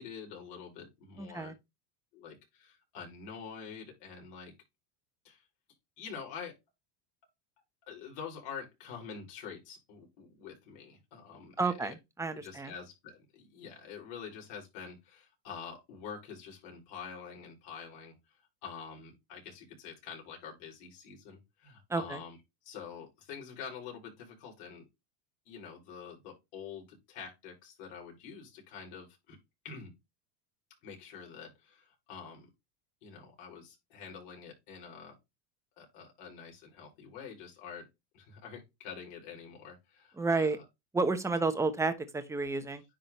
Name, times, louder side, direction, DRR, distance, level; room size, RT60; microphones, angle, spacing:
voice 1, 0.0-1.5 2.1-4.5 5.2-5.4 6.0-6.5 7.9-11.9 12.3-18.1 18.6-22.4 22.6-24.8 25.5-29.4 29.6-29.9 30.8-32.5 33.0-35.1 35.8-37.8 38.1-40.6, left 6 dB, 65° left, 4.8 m, -46 dB
voice 2, 1.2-1.5 11.6-12.7 21.9-22.2 40.2-40.6 40.9-42.8, right 3 dB, 5° right, 0.9 m, -31 dB
10.0 x 3.8 x 3.1 m
supercardioid pair, 135°, 46 cm